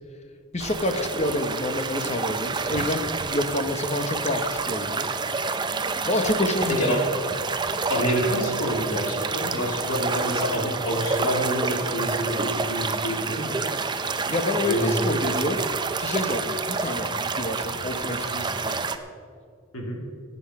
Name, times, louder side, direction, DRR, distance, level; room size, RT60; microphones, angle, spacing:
voice 1, 0.5-5.1 6.1-7.0 14.3-15.6 16.0-18.8, left 1 dB, 30° left, 6 dB, 1.1 m, -28 dB
sound 1, 0.6-19.0, right 4 dB, 20° right, 0.6 m, -29 dB
voice 2, 7.9-13.7 14.6-15.0 15.3-15.5 19.7-20.0, equal, 85° left, 0 dB, 2.9 m, -27 dB
16.5 x 9.8 x 4.9 m, 2.2 s
head